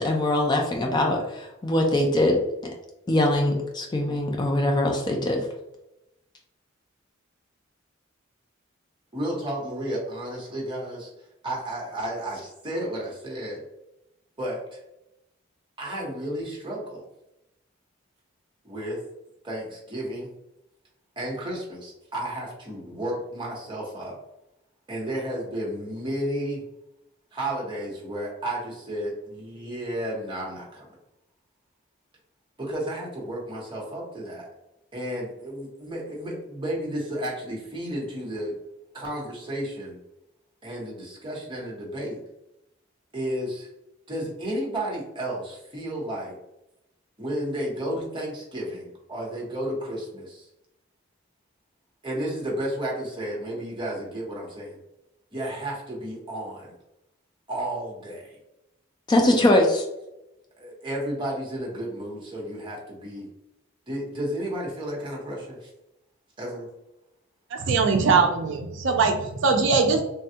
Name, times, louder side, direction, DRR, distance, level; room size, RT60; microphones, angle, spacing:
voice 1, 0.0-2.4 3.1-5.5 59.1-59.8, left 1 dB, 20° left, 1 dB, 0.4 m, -22 dB
voice 2, 9.1-11.1 11.4-13.6 14.4-14.8 15.8-17.0 18.6-19.0 19.4-20.3 21.2-24.2 24.9-26.6 27.3-30.9 32.6-34.5 34.9-38.5 38.9-40.0 40.6-42.2 43.1-43.7 44.1-46.4 47.2-50.5 52.0-54.8 55.3-56.7 57.5-58.4 59.2-59.4 60.6-63.3 63.9-65.7 66.4-66.7, right 1 dB, 25° right, -3 dB, 0.9 m, -32 dB
voice 3, 67.5-70.0, right 4 dB, 65° right, 4 dB, 0.4 m, -21 dB
3.3 x 2.3 x 2.7 m, 0.90 s
head